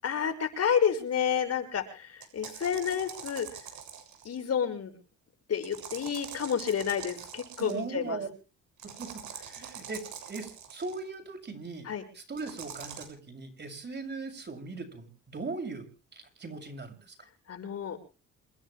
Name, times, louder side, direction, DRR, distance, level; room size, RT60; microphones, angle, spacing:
voice 1, 0.0-3.5 4.2-4.9 5.5-8.2 11.8-12.0 17.5-18.0, left 7 dB, 55° left, 6 dB, 6.0 m, -30 dB
sound 1, 2.2-4.4 5.6-7.8 8.8-11.0 12.4-13.1, right 8 dB, 70° right, 7.1 m, -44 dB
voice 2, 7.6-8.3 8.8-9.1 9.4-11.9 12.1-15.9 16.1-17.1, right 3 dB, 35° right, 5 dB, 7.1 m, -39 dB
28.0 x 11.0 x 3.4 m, 0.36 s
cardioid pair, 90°, 30 cm